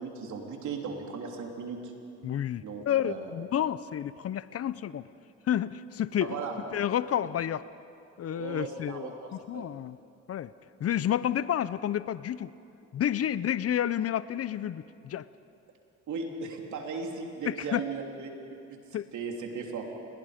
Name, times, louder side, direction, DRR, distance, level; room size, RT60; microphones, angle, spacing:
voice 1, 0.0-1.9 2.6-3.3 6.2-6.7 7.1-7.3 8.3-9.7 16.1-18.3 18.7-18.8 19.1-19.9, right 5 dB, 75° right, 1 dB, 3.3 m, -37 dB
voice 2, 2.2-5.1 5.5-6.4 6.7-7.7 8.2-10.0 10.3-10.5 10.8-12.5 12.9-15.3 17.5-17.8 18.9-19.1, left 10 dB, 50° left, 16 dB, 0.6 m, -30 dB
30.0 x 21.0 x 5.2 m, 2.6 s
cardioid pair, 90°, 30 cm